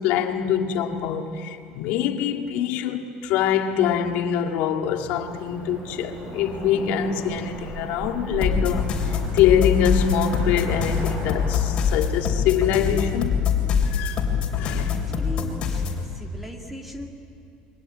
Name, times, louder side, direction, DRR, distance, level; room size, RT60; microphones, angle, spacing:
voice 1, 0.0-8.9 9.3-13.4 13.8-14.2 14.6-14.9, left 8 dB, 60° left, 2.0 m, -24 dB
Cricket / Motor vehicle (road), 5.1-12.0, right 2 dB, 30° right, 7.6 m, -35 dB
sound 1, 8.4-16.0, left 7 dB, 30° left, 3.6 m, -24 dB
voice 2, 14.8-15.9 16.1-17.1, equal, 5° right, 2.0 m, -38 dB
28.5 x 23.5 x 8.9 m
cardioid pair, 170°, 3 cm